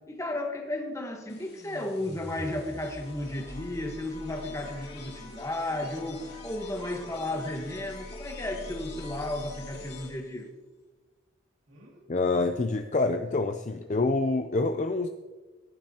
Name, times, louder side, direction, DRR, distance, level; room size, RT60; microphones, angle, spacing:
voice 1, 0.1-10.5, left 1 dB, 15° left, 3 dB, 1.3 m, -34 dB
sound 1, 1.3-10.4, left 2 dB, 50° left, 2.5 m, -44 dB
sound 2, 3.5-3.7 4.5-4.9 5.3-5.4 5.8-6.0 6.9-7.9 8.3-9.0 9.6-10.1 11.7-12.1 13.2-13.4 13.8-13.9, equal, 75° right, 2.5 m, -54 dB
voice 2, 12.1-15.1, left 3 dB, 35° left, 7 dB, 0.4 m, -26 dB
17.5 x 10.5 x 2.9 m, 1.3 s
head